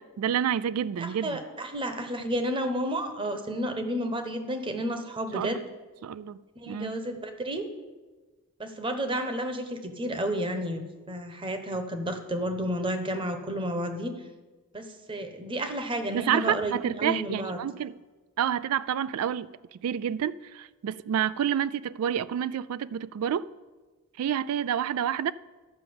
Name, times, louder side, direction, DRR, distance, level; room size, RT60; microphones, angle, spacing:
voice 1, 0.2-1.4 5.3-5.7 6.0-6.4 6.7-7.0 16.1-18.0 18.4-23.5 24.2-25.3, right 9 dB, 85° right, 0.3 m, -29 dB
voice 2, 1.0-5.6 6.6-7.6 8.6-14.1 14.7-17.6, equal, 25° right, 1.0 m, -31 dB
12.0 x 5.9 x 7.8 m
head